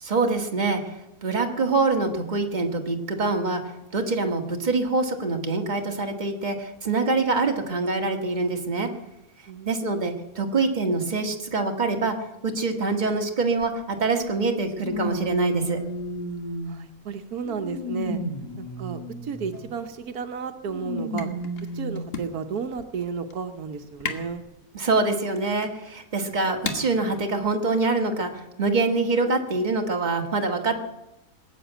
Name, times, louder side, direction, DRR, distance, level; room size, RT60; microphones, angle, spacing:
voice 1, 0.0-0.9 1.2-3.6 3.9-8.9 9.7-12.1 12.4-15.8 24.7-30.8, right 3 dB, 30° right, 3 dB, 1.7 m, -25 dB
voice 2, 9.5-10.1 16.6-18.2 18.6-21.3 21.7-24.4, right 6 dB, 80° right, 8 dB, 1.4 m, -33 dB
sound 1, 13.6-13.7 14.8-16.9 17.4-19.5 20.7-22.1 22.8-22.9 24.0-24.1, equal, 25° left, 2.6 m, -33 dB
sound 2, 19.5-28.3, left 3 dB, 40° left, 1.6 m, -40 dB
19.5 x 8.1 x 9.1 m, 0.92 s
omnidirectional pair, 1.6 m